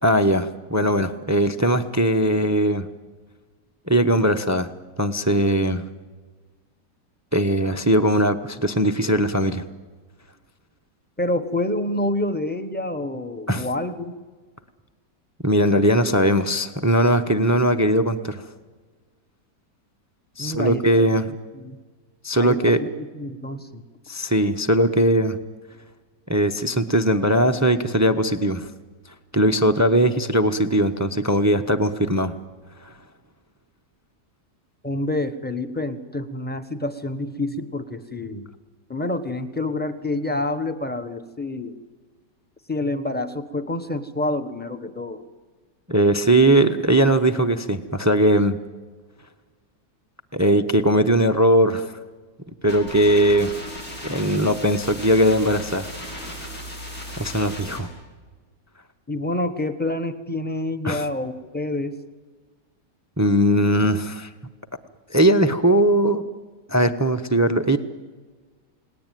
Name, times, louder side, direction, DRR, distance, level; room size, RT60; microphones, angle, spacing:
voice 1, 0.0-2.9 3.9-4.7 5.0-5.9 7.3-9.6 13.5-13.7 15.4-18.4 20.4-21.3 22.2-22.8 24.1-25.4 26.3-28.7 29.3-32.3 32.8-32.9 45.9-48.6 50.3-51.9 52.6-53.5 54.0-55.9 56.4-56.5 57.2-57.9 60.8-61.1 63.2-64.3 65.1-66.2 66.7-67.8, right 1 dB, 15° right, 10 dB, 0.5 m, -19 dB
voice 2, 11.2-14.2 20.4-21.0 21.5-21.8 22.4-23.8 34.8-38.5 38.9-41.7 42.7-45.2 59.1-62.0, left 2 dB, 5° left, 9 dB, 1.0 m, -28 dB
sound 1, 52.7-57.8, equal, 60° left, 8.5 m, -36 dB
29.5 x 19.0 x 9.2 m, 1.4 s
omnidirectional pair, 1.9 m